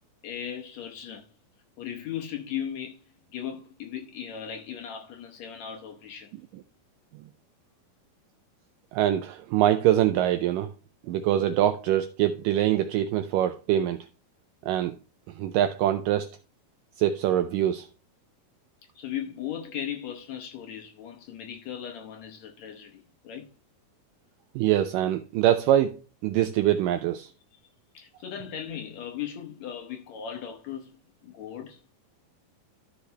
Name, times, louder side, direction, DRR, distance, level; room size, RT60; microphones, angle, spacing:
voice 1, 0.2-1.3 1.8-3.0 3.3-6.3 19.0-23.5 27.5-27.6 27.9-31.8, left 9 dB, 75° left, 1.6 m, -37 dB
voice 2, 8.9-10.7 11.1-14.1 14.7-15.0 15.4-16.3 17.0-17.9 24.6-27.3, right 12 dB, 85° right, 1.9 m, -24 dB
13.5 x 5.7 x 3.2 m
omnidirectional pair, 4.4 m